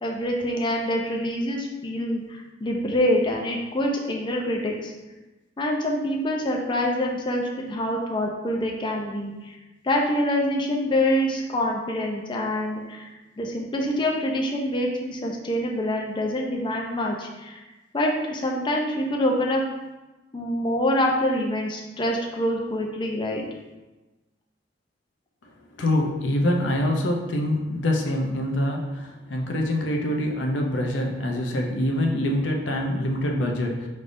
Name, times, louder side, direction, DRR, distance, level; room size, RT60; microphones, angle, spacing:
voice 1, 0.0-4.9 5.6-9.6 9.8-13.1 13.4-17.6 17.9-19.6 20.3-23.4, left 1 dB, 25° left, 0 dB, 0.5 m, -25 dB
voice 2, 25.8-33.9, left 1 dB, 90° left, 1 dB, 0.6 m, -25 dB
5.2 x 3.3 x 2.6 m, 1.1 s
head